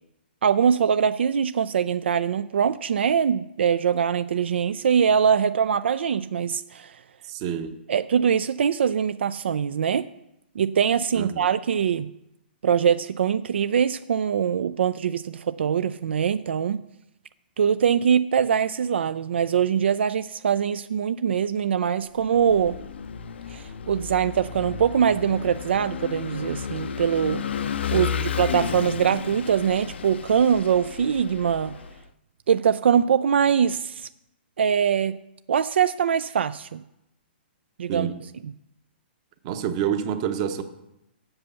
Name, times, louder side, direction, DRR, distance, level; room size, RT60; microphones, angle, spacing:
voice 1, 0.4-7.0 7.9-10.1 10.6-12.1 12.6-16.8 17.6-22.8 23.5-27.5 27.9-31.7 32.5-34.1 34.6-35.2 35.5-36.8 37.8-38.1 38.4-38.5, right 7 dB, 80° right, 14 dB, 0.4 m, -23 dB
voice 2, 7.3-7.7 11.1-11.5 27.9-28.3 37.9-38.1 39.4-40.6, right 8 dB, 35° right, 9 dB, 0.9 m, -28 dB
Vehicle / Engine, 22.2-32.0, left 8 dB, 80° left, 0.6 m, -33 dB
7.8 x 6.7 x 6.9 m, 0.86 s
hypercardioid pair, 155°, 6 cm